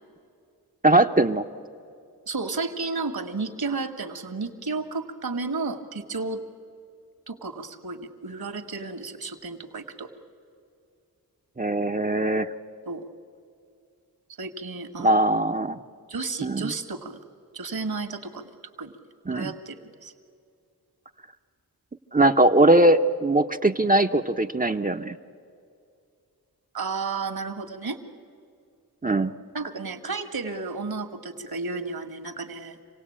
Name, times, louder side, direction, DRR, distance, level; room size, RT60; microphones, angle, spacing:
voice 1, 0.8-1.4 11.6-12.5 15.0-15.8 16.4-16.7 19.3-19.5 22.1-25.2 29.0-29.3, right 1 dB, 20° right, 6 dB, 0.8 m, -20 dB
voice 2, 2.3-6.4 7.3-10.1 12.9-13.0 14.4-15.3 16.1-17.2 17.5-18.4 18.8-18.9 19.3-20.1 26.7-28.0 29.5-32.8, right 3 dB, 70° right, 6 dB, 1.9 m, -32 dB
27.0 x 17.5 x 8.7 m, 2.5 s
cardioid pair, 55°, 38 cm